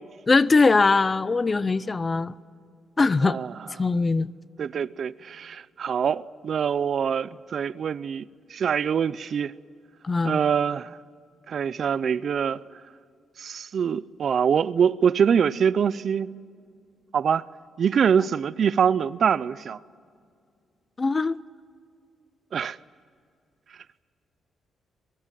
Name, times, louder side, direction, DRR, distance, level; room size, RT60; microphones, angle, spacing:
voice 1, 0.3-2.3 3.0-3.4 3.8-4.3 10.0-10.4 21.0-21.4, left 3 dB, 25° left, 0.6 m, -21 dB
voice 2, 3.2-3.5 4.6-8.2 8.5-9.5 10.2-11.0 11.5-12.6 13.4-16.3 17.1-17.4 17.8-19.8 22.5-22.8, right 7 dB, 50° right, 0.5 m, -24 dB
23.5 x 22.5 x 7.5 m
cardioid pair, 130°, 0 cm